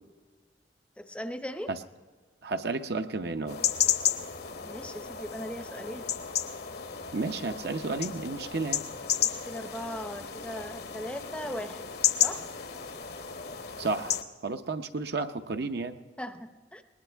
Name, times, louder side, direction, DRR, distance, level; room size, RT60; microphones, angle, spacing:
voice 1, 1.0-1.7 4.6-6.1 9.2-11.9 12.2-12.4 16.2-16.8, equal, 5° left, 9 dB, 0.6 m, -38 dB
voice 2, 2.4-3.6 7.1-8.8 13.8-14.2 14.4-16.0, right 3 dB, 60° right, 7 dB, 0.7 m, -32 dB
sound 1, 3.5-14.2, left 9 dB, 60° left, 1.0 m, -32 dB
20.5 x 20.0 x 3.4 m, 1.5 s
head